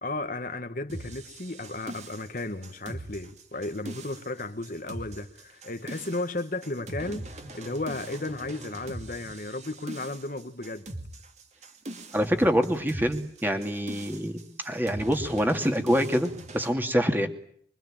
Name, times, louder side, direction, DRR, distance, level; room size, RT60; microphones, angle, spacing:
voice 1, 0.0-10.9, left 2 dB, 50° left, 1.5 m, -34 dB
sound 1, 0.9-16.7, right 1 dB, 40° right, 2.4 m, -42 dB
voice 2, 12.1-14.4 14.6-17.3, equal, 10° right, 2.5 m, -25 dB
25.5 x 24.0 x 9.0 m
head